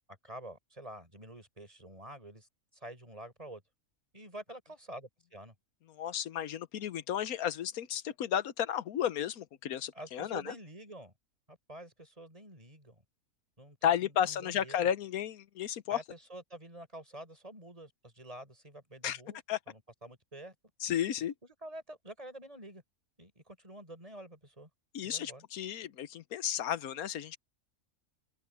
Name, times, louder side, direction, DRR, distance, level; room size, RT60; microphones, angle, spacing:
voice 1, 0.1-3.6 4.1-5.5 9.9-11.1 11.5-13.0 13.6-14.9 15.9-19.4 19.7-20.5 21.6-22.8 23.2-24.7 25.0-25.4, right 1 dB, 25° right, 5.9 m, -48 dB
voice 2, 5.9-10.5 13.8-16.0 19.0-19.2 19.5-19.6 20.8-21.3 24.9-27.4, left 10 dB, 80° left, 1.3 m, -33 dB
omnidirectional pair, 1.5 m